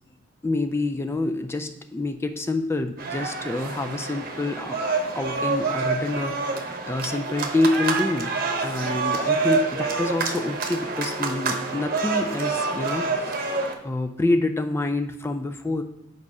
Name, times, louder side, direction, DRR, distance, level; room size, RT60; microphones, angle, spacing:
voice 1, 0.4-4.8 5.2-8.3 8.6-13.6 13.8-15.8, left 2 dB, 15° left, 6 dB, 0.3 m, -27 dB
sound 1, 3.0-13.7, right 4 dB, 45° right, 0.9 m, -27 dB
5.0 x 4.7 x 5.4 m, 0.86 s
head